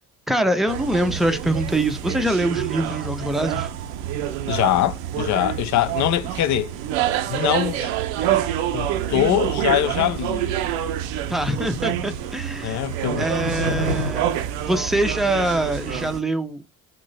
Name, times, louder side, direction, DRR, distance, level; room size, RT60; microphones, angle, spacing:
voice 1, 0.3-3.7 11.3-12.8 13.2-16.6, right 1 dB, ahead, 0.7 m, -24 dB
sound 1, 0.7-16.2, right 11 dB, 60° right, 0.6 m, -27 dB
voice 2, 4.5-6.7 7.3-7.9 8.7-10.6 12.6-13.3, left 12 dB, 40° left, 0.5 m, -23 dB
Skateboard, 10.4-15.9, equal, 85° right, 0.9 m, -33 dB
3.8 x 2.6 x 4.2 m
figure-of-eight pair, 50°, 45 cm